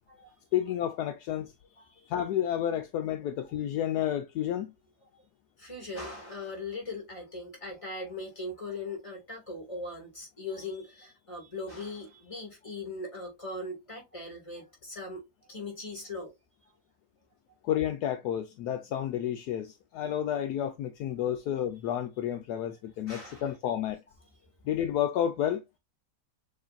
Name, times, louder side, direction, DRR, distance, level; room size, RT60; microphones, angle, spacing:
voice 1, 0.5-1.5 2.1-4.7 17.6-24.0 24.6-25.6, left 10 dB, 75° left, 1.1 m, -30 dB
voice 2, 5.6-15.2 15.5-16.3 23.1-23.4, left 2 dB, 20° left, 2.1 m, -39 dB
6.5 x 3.1 x 2.4 m
omnidirectional pair, 1.8 m